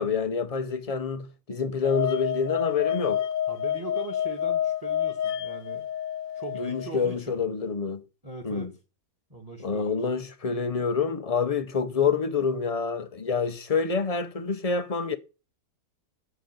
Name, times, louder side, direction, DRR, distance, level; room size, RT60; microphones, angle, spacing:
voice 1, 0.0-3.3 6.6-8.0 8.4-8.7 9.6-15.2, left 5 dB, 35° left, 0.6 m, -27 dB
sound 1, 1.8-6.9, left 10 dB, 65° left, 1.1 m, -29 dB
voice 2, 3.5-5.9 6.3-7.4 8.2-8.7 9.3-10.1, right 4 dB, 15° right, 1.7 m, -40 dB
8.3 x 6.9 x 8.0 m
omnidirectional pair, 1.6 m